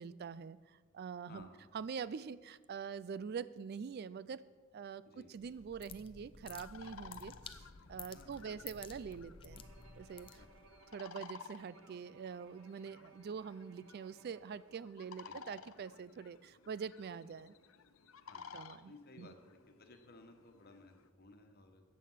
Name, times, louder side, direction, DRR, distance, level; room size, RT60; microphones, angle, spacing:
voice 1, 0.0-4.4 4.7-9.6 10.0-10.4 10.9-17.5 18.5-19.3, right 6 dB, 50° right, 17 dB, 0.3 m, -45 dB
voice 2, 1.3-1.7 5.0-5.3 8.1-8.8 10.4-10.5 15.2-15.4 18.3-18.6 18.8-21.8, left 2 dB, 50° left, 5 dB, 1.4 m, -58 dB
sound 1, 5.4-10.8, left 6 dB, 25° left, 0.6 m, -53 dB
sound 2, 6.6-21.1, left 6 dB, 80° left, 0.7 m, -56 dB
Bowed string instrument, 9.5-14.9, right 4 dB, 85° right, 1.0 m, -64 dB
14.0 x 8.5 x 5.7 m, 1.4 s
head